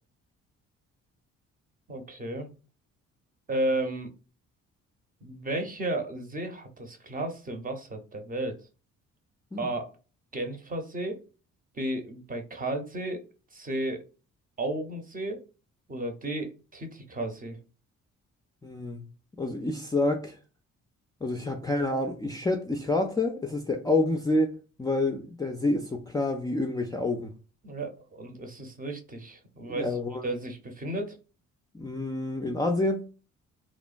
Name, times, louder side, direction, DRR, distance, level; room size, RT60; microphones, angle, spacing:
voice 1, 1.9-2.5 3.5-4.1 5.2-8.6 9.6-9.9 10.3-11.2 11.7-13.2 13.5-14.0 14.6-15.4 15.9-17.6 27.6-30.0 30.2-31.2, right 1 dB, 30° right, 0.7 m, -33 dB
voice 2, 18.6-19.0 19.4-20.3 21.2-24.5 24.8-27.3 29.7-30.2 31.7-33.0, left 2 dB, 15° left, 0.3 m, -28 dB
2.9 x 2.1 x 2.4 m
cardioid pair, 90°, 30 cm